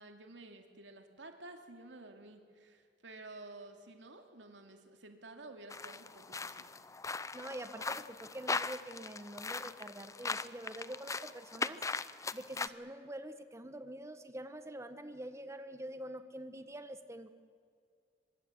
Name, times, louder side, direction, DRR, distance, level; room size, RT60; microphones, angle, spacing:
voice 1, 0.0-6.7, right 2 dB, 80° right, 5 dB, 2.6 m, -52 dB
sound 1, 5.7-12.7, left 4 dB, 20° left, 0.6 m, -40 dB
voice 2, 7.3-11.8 12.3-17.3, right 1 dB, 15° right, 9 dB, 1.3 m, -46 dB
24.0 x 22.0 x 8.1 m, 2.2 s
head